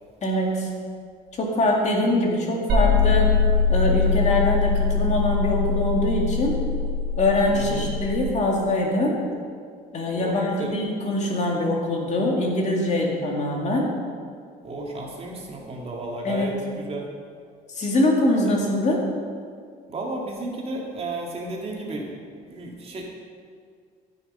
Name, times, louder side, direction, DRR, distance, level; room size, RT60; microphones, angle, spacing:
voice 1, 0.2-0.7 1.4-3.3 3.7-6.6 7.2-9.2 9.9-13.9 16.2-16.5 17.7-19.0, left 1 dB, 45° left, -1 dB, 2.3 m, -23 dB
sound 1, 2.7-8.2, left 5 dB, 85° right, 2.4 m, -22 dB
voice 2, 7.5-7.9 10.1-10.7 14.6-17.1 19.9-22.1 22.5-23.0, right 2 dB, 35° right, -1 dB, 2.1 m, -33 dB
14.5 x 6.5 x 5.5 m, 2.1 s
cardioid pair, 110°, 17 cm